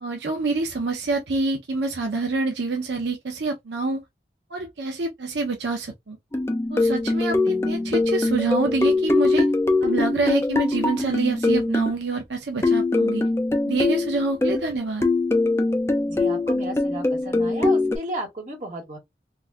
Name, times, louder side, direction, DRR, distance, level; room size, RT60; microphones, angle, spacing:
voice 1, 0.0-4.0 4.5-6.2 6.7-9.4 9.8-13.2 13.6-15.1, right 3 dB, 85° right, 0.7 m, -26 dB
sound 1, 6.3-11.9 12.6-14.7 15.0-18.0, left 2 dB, 15° left, 0.5 m, -22 dB
voice 2, 16.1-19.0, right 1 dB, 45° right, 1.6 m, -33 dB
3.9 x 2.6 x 2.3 m
head